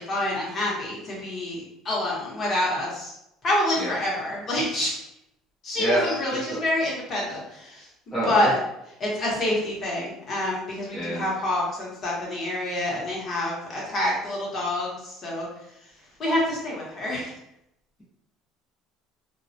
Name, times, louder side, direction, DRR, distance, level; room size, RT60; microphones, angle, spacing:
voice 1, 0.0-3.1 3.4-4.9 5.6-8.6 9.0-15.5 16.2-17.3, left 1 dB, 40° left, -4 dB, 0.9 m, -27 dB
voice 2, 8.1-8.5 10.9-11.2, right 1 dB, 10° left, -8 dB, 0.6 m, -27 dB
2.2 x 2.1 x 2.6 m, 0.82 s
cardioid pair, 120°, 0 cm